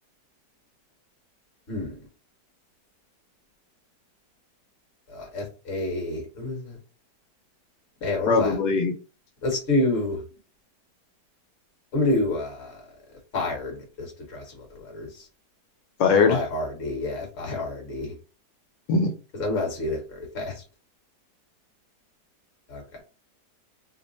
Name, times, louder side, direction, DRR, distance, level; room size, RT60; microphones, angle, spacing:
voice 1, 5.1-6.8 8.0-8.6 9.4-10.2 11.9-12.8 13.3-15.3 16.3-18.1 19.3-20.6 22.7-23.0, left 2 dB, 40° left, 0 dB, 1.3 m, -28 dB
voice 2, 8.3-8.9 16.0-16.4 18.9-19.1, left 5 dB, 80° left, 4 dB, 1.3 m, -20 dB
3.1 x 2.0 x 3.9 m, 0.33 s
omnidirectional pair, 1.9 m